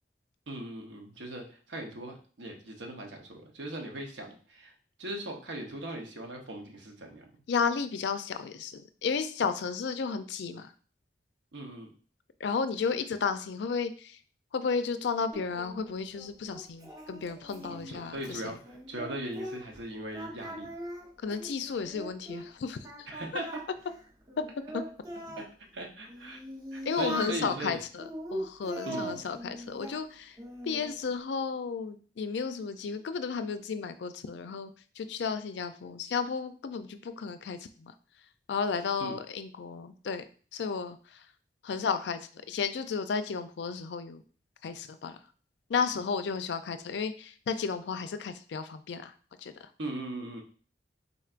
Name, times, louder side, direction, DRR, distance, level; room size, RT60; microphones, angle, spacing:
voice 1, 0.5-4.7 5.0-7.2 11.5-11.9 17.7-20.7 23.1-23.6 25.4-25.5 25.7-26.4 26.7-27.8 28.8-29.2 39.0-39.2 49.8-50.4, right 1 dB, 85° right, 2 dB, 0.9 m, -39 dB
voice 2, 7.5-10.7 12.4-14.2 14.5-18.5 21.2-22.8 24.4-24.5 24.7-24.8 26.9-30.4 30.6-37.9 38.5-40.2 40.5-41.2 41.6-44.2 44.6-45.2 45.7-49.1 49.4-49.5, left 5 dB, 75° left, 10 dB, 0.4 m, -33 dB
Singing, 15.3-19.8 20.1-22.5 22.8-25.5 26.1-27.4 28.0-30.0 30.4-31.0, equal, 20° right, 0.7 m, -41 dB
4.4 x 4.0 x 2.4 m, 0.42 s
head